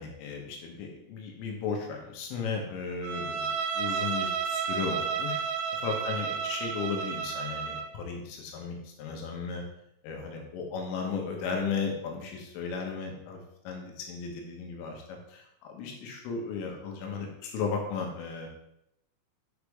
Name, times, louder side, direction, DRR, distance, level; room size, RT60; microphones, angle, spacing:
voice 1, 0.0-5.4 5.8-9.6 10.0-18.5, left 5 dB, 80° left, 1 dB, 3.7 m, -35 dB
Bowed string instrument, 3.0-7.9, right 7 dB, 90° right, 3.3 m, -32 dB
8.1 x 5.6 x 3.5 m, 0.80 s
omnidirectional pair, 5.8 m